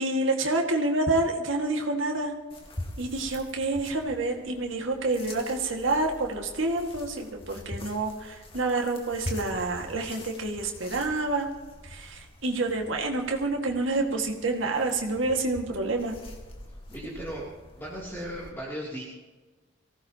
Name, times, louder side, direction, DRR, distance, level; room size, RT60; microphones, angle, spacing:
voice 1, 0.0-2.3 3.0-11.5 11.8-16.2, right 2 dB, 80° right, 1 dB, 1.9 m, -28 dB
sound 1, 2.5-18.5, left 1 dB, 30° left, 2.0 m, -44 dB
voice 2, 16.9-17.5 17.8-19.0, equal, 10° left, -6 dB, 2.8 m, -36 dB
24.0 x 16.5 x 2.9 m, 1.3 s
head